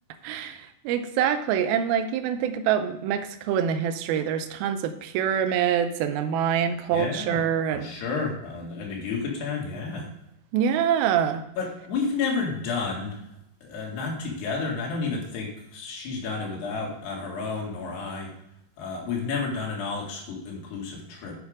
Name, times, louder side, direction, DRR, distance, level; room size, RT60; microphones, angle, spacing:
voice 1, 0.2-7.9 10.5-11.4, right 8 dB, 85° right, 9 dB, 2.3 m, -25 dB
voice 2, 6.9-7.4 7.7-10.1 11.6-13.2 13.6-18.3 18.8-21.4, left 4 dB, 75° left, -1 dB, 3.9 m, -31 dB
8.6 x 6.2 x 4.8 m, 0.80 s
omnidirectional pair, 4.8 m